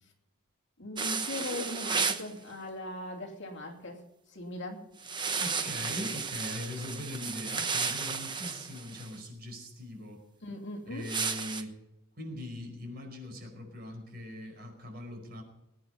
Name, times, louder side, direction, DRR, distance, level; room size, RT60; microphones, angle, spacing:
voice 1, 0.8-4.0 4.3-4.9 10.4-11.1, left 1 dB, 55° left, 1 dB, 2.8 m, -39 dB
sound 1, 1.0-2.3 5.0-9.1 11.0-11.6, right 5 dB, 20° right, 1.0 m, -33 dB
voice 2, 5.4-10.2 10.9-11.8 12.2-15.4, left 1 dB, 45° right, 2 dB, 5.0 m, -41 dB
20.5 x 9.4 x 5.4 m, 0.88 s
head